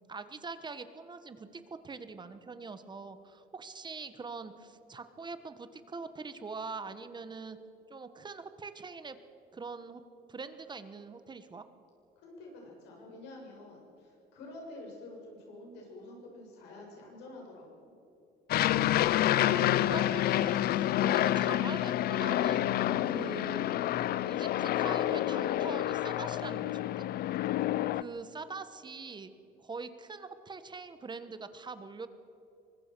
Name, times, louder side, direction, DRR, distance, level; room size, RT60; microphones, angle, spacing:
voice 1, 0.1-7.6 7.9-9.2 9.5-10.0 10.3-11.6 19.3-22.7 23.1-23.6 24.3-27.1 27.9-29.3 29.6-32.1, right 4 dB, 25° right, 11 dB, 1.3 m, -43 dB
voice 2, 12.2-17.8, left 2 dB, 90° left, -1 dB, 7.2 m, -48 dB
Aircraft, 18.5-28.0, left 13 dB, 65° left, 0.6 m, -28 dB
23.5 x 20.5 x 6.2 m, 2.9 s
cardioid pair, 110°, 17 cm